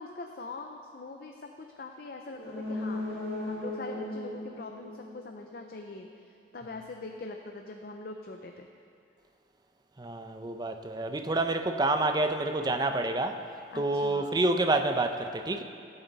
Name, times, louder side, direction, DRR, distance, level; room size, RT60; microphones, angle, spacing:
voice 1, 0.0-2.4 2.7-3.0 3.4-6.1 6.5-8.7 13.7-14.4, left 3 dB, 55° left, 4 dB, 0.5 m, -42 dB
sound 1, 2.3-6.0 6.3-6.4, left 1 dB, 85° left, 2.3 m, -37 dB
voice 2, 10.0-13.4 13.8-15.6, right 2 dB, 25° right, 7 dB, 0.5 m, -28 dB
17.0 x 8.0 x 4.0 m, 2.4 s
head